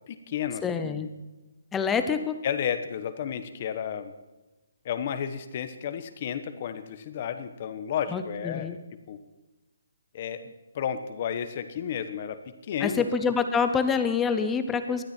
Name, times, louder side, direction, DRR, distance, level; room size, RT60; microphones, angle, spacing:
voice 1, 0.1-1.1 2.4-4.1 4.8-8.8 9.1-9.2 10.1-13.1, left 8 dB, 30° left, 10 dB, 1.1 m, -32 dB
voice 2, 0.6-1.1 1.7-2.3 8.1-8.8 12.8-15.0, left 6 dB, 5° left, 9 dB, 0.7 m, -26 dB
19.0 x 13.0 x 4.4 m, 1.1 s
hypercardioid pair, 175°, 0 cm